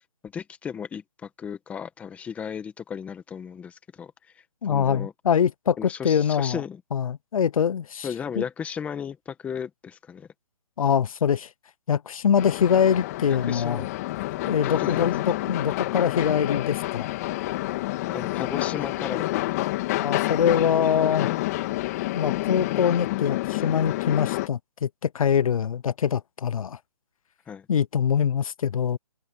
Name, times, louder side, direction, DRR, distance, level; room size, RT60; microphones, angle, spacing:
voice 1, 0.2-5.1 5.8-6.8 8.0-10.3 13.3-13.9 14.3-15.1 18.1-19.3 21.2-21.4 27.5-27.7, left 7 dB, 5° left, 1.5 m, -35 dB
voice 2, 4.6-6.6 6.9-8.1 8.4-8.5 10.8-11.5 11.9-13.8 14.5-17.1 20.0-21.3 22.1-26.8 27.7-29.0, left 8 dB, 70° left, 0.6 m, -24 dB
sound 1, 12.4-24.5, left 18 dB, 25° left, 2.5 m, -28 dB
hypercardioid pair, 165°, 19 cm